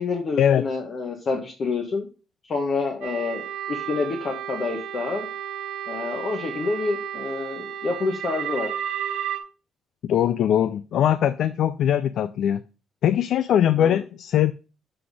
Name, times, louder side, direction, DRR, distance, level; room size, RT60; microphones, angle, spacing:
voice 1, 0.0-2.1 2.4-5.3 5.9-8.7 13.8-14.0, left 4 dB, 50° left, 1.3 m, -28 dB
sound 1, 3.0-9.4, right 9 dB, 90° right, 1.0 m, -32 dB
voice 2, 10.0-12.6 13.0-14.5, left 10 dB, 70° left, 0.4 m, -21 dB
7.7 x 4.2 x 4.8 m
cardioid pair, 90°, 0 cm